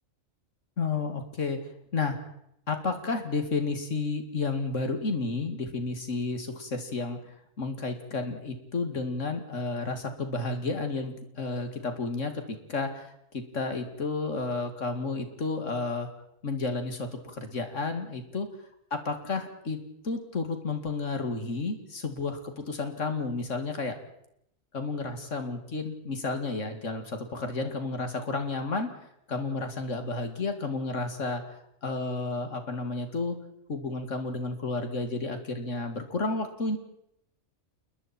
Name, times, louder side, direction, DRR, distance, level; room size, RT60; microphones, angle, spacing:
voice 1, 0.8-1.6 1.9-2.2 2.7-7.2 7.6-16.1 16.4-18.5 18.9-19.8 20.0-24.0 24.7-28.9 29.3-31.4 31.8-33.4 33.7-36.8, left 3 dB, 70° left, 6 dB, 2.8 m, -31 dB
29.0 x 21.5 x 4.5 m, 0.76 s
omnidirectional pair, 1.4 m